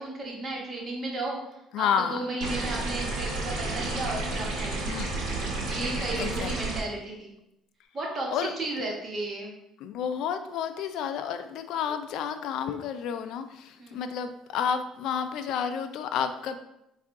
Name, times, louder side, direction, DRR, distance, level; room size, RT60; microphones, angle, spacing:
voice 1, 0.0-1.4 1.8-7.3 7.9-9.5 13.8-14.0, right 2 dB, 40° right, -2 dB, 1.3 m, -34 dB
voice 2, 1.7-2.2 4.9-5.2 6.1-6.5 8.3-8.5 9.8-16.6, left 7 dB, 75° left, 9 dB, 0.3 m, -30 dB
sound 1, 2.4-6.8, right 2 dB, 85° right, 1.0 m, -31 dB
4.5 x 2.4 x 3.6 m, 0.83 s
cardioid pair, 105°, 0 cm